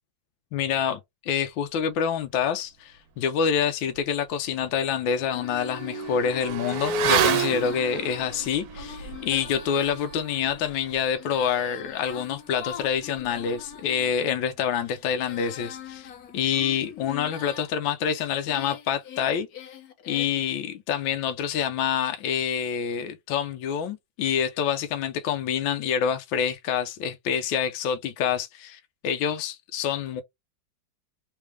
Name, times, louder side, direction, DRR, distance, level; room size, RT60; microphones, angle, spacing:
voice 1, 0.5-19.5 20.1-30.2, left 8 dB, 80° left, 1.3 m, -27 dB
Motorcycle / Accelerating revving vroom, 4.0-4.1 4.4-14.5 14.7-14.8, right 6 dB, 65° right, 1.1 m, -32 dB
Female singing, 5.2-14.1 14.7-17.7 18.2-20.5, left 8 dB, 60° left, 1.2 m, -43 dB
3.4 x 3.3 x 3.2 m
omnidirectional pair, 2.1 m